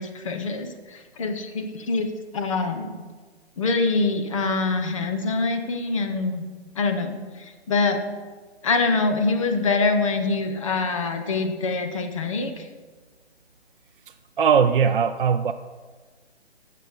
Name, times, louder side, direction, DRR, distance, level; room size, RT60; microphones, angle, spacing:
voice 1, 0.0-2.9 3.6-6.5 6.8-8.0 8.6-12.7, left 3 dB, 30° left, 5 dB, 0.7 m, -25 dB
voice 2, 14.4-15.5, right 7 dB, 55° right, 7 dB, 0.4 m, -19 dB
10.0 x 6.6 x 4.0 m, 1.4 s
figure-of-eight pair, 150°, 34 cm